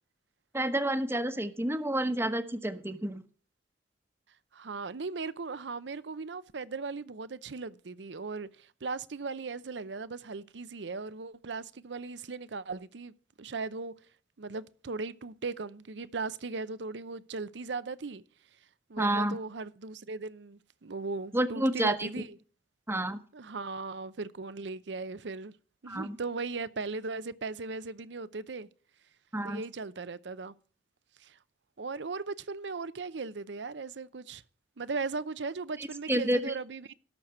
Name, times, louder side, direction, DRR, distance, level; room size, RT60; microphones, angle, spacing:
voice 1, 0.5-3.2 19.0-19.4 21.3-22.1 22.9-23.2 25.9-26.2 29.3-29.6 35.8-36.5, right 1 dB, 15° right, 1.0 m, -29 dB
voice 2, 4.5-13.9 14.4-18.2 18.9-22.4 23.3-25.5 25.8-28.7 29.4-30.5 31.2-31.4 31.8-34.4 34.8-36.9, right 4 dB, 70° right, 0.7 m, -38 dB
17.5 x 6.6 x 4.3 m
head